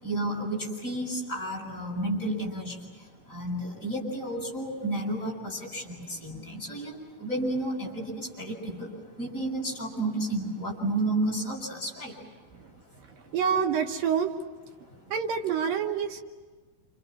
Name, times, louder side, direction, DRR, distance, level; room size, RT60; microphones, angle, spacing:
voice 1, 0.0-2.9 3.3-8.9 9.2-12.1, right 1 dB, 20° left, -2 dB, 7.2 m, -31 dB
voice 2, 13.3-14.3 15.1-16.2, right 7 dB, 70° right, 4 dB, 2.6 m, -26 dB
29.5 x 29.0 x 6.2 m, 1.4 s
omnidirectional pair, 4.4 m